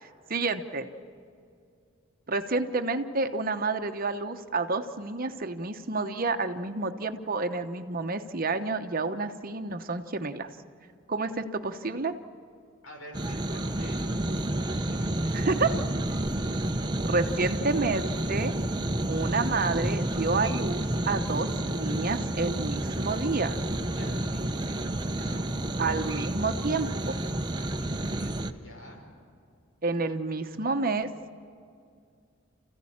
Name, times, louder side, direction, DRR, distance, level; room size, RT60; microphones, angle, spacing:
voice 1, 0.3-0.8 2.3-10.5 11.1-12.1 15.3-15.7 17.0-18.5 19.1-23.6 25.8-27.2 29.8-31.1, right 3 dB, 45° right, 8 dB, 1.0 m, -29 dB
voice 2, 12.8-14.6 14.9-15.8 23.9-25.5 27.5-29.0, left 1 dB, 80° left, 0 dB, 5.8 m, -48 dB
sound 1, 13.1-28.5, right 1 dB, 20° right, 0.7 m, -30 dB
30.0 x 15.5 x 8.7 m, 2.4 s
head